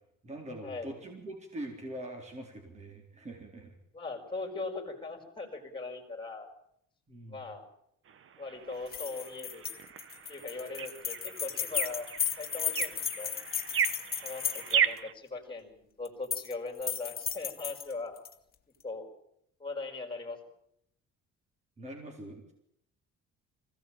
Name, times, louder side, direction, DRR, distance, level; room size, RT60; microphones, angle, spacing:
voice 1, 0.2-3.8 7.1-7.4 21.8-22.5, right 1 dB, 25° right, 2 dB, 3.9 m, -43 dB
voice 2, 3.9-6.5 7.3-7.6 8.4-9.6 10.3-12.1 12.4-13.3 14.2-18.2 18.8-19.1 19.6-20.4, left 3 dB, 15° left, 5 dB, 4.9 m, -40 dB
sound 1, 8.1-15.1, right 8 dB, 45° right, 1.3 m, -35 dB
sound 2, 8.9-15.0 16.1-16.5 16.8-18.3, left 8 dB, 30° left, 2.2 m, -35 dB
26.0 x 17.0 x 8.9 m, 0.74 s
cardioid pair, 175°, 29 cm